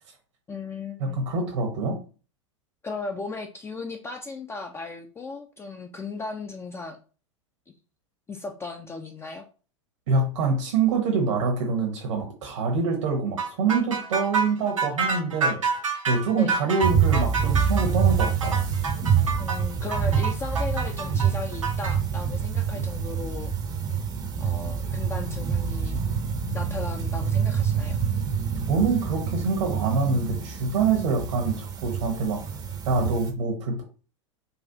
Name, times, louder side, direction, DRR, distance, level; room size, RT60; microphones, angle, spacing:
voice 1, 0.5-1.2 2.8-7.0 8.3-9.5 16.3-16.6 19.4-23.5 24.4-26.0 26.5-28.0, left 3 dB, 15° left, 4 dB, 0.4 m, -36 dB
voice 2, 1.0-2.0 10.1-15.6 16.1-18.6 28.7-32.4 32.8-33.8, right 4 dB, 65° right, 1 dB, 1.1 m, -25 dB
sound 1, 13.4-21.9, right 4 dB, 90° right, 0.9 m, -28 dB
sound 2, 16.8-33.3, right 7 dB, 25° right, 0.6 m, -26 dB
4.0 x 2.4 x 2.7 m, 0.37 s
hypercardioid pair, 95°, 16 cm